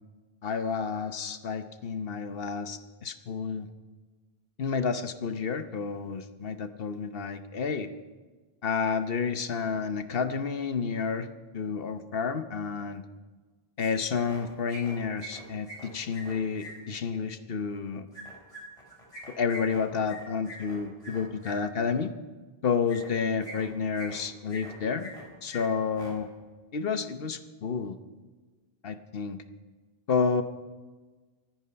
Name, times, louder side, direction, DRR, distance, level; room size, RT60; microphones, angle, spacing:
voice 1, 0.4-3.7 4.6-7.9 8.6-11.3 11.5-13.0 13.8-18.1 19.3-22.1 22.6-25.1 25.4-26.3 26.7-28.0 28.8-29.4 30.1-30.4, left 5 dB, 65° left, 10 dB, 1.1 m, -30 dB
sound 1, 13.8-14.4 14.7-16.7 18.1-21.5 22.9-23.1 23.4-24.2 24.5-25.2 25.5-25.6 25.9-26.1, equal, 35° left, 3.8 m, -44 dB
23.5 x 9.3 x 5.7 m, 1.3 s
omnidirectional pair, 1.0 m